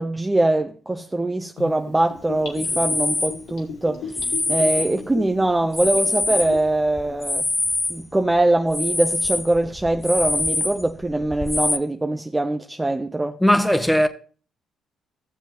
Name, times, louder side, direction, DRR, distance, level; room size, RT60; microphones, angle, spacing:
voice 1, 0.0-4.2 4.5-7.5 7.9-13.4, right 2 dB, 15° right, 0.7 m, -22 dB
Gurgling / Bathtub (filling or washing), 1.6-6.7 7.1-7.2, left 5 dB, 80° left, 2.2 m, -36 dB
sound 1, 2.4-3.4 4.1-5.2 5.6-8.0 8.3-11.8, left 2 dB, 20° left, 0.7 m, -25 dB
voice 2, 13.4-14.1, equal, 5° left, 1.3 m, -17 dB
15.0 x 7.3 x 3.0 m
supercardioid pair, 60°, 0 cm